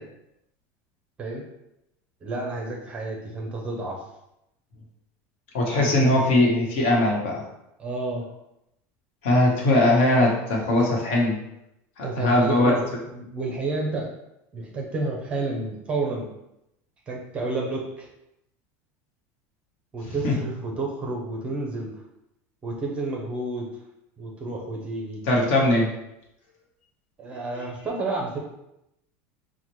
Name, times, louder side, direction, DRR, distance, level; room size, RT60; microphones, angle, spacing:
voice 1, 2.2-4.0 5.8-6.0 7.8-8.2 12.0-12.8 13.1-14.1 14.5-16.3 17.1-18.1 19.9-21.9 22.6-23.7 24.2-25.2 27.2-28.4, right 3 dB, 15° right, 0 dB, 0.5 m, -30 dB
voice 2, 5.5-7.4 9.2-11.4 12.0-12.7 20.2-20.4 25.3-25.9, left 1 dB, 65° left, -2 dB, 1.2 m, -20 dB
5.5 x 2.1 x 3.1 m, 0.85 s
cardioid pair, 180°, 7 cm